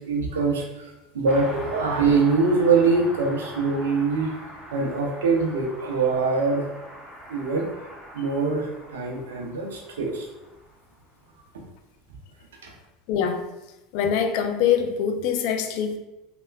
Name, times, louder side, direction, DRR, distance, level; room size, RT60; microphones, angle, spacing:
voice 1, 0.0-4.4 4.7-6.7 7.3-7.7 8.1-10.3 12.6-12.8, right 4 dB, 80° right, 1 dB, 0.5 m, -23 dB
Car passing by, 1.2-11.2 11.5-11.6, equal, ahead, 0.8 m, -42 dB
voice 2, 13.1-13.5 13.9-16.0, left 8 dB, 60° left, 6 dB, 0.3 m, -24 dB
3.2 x 2.1 x 2.2 m, 0.98 s
hypercardioid pair, 80°, 0 cm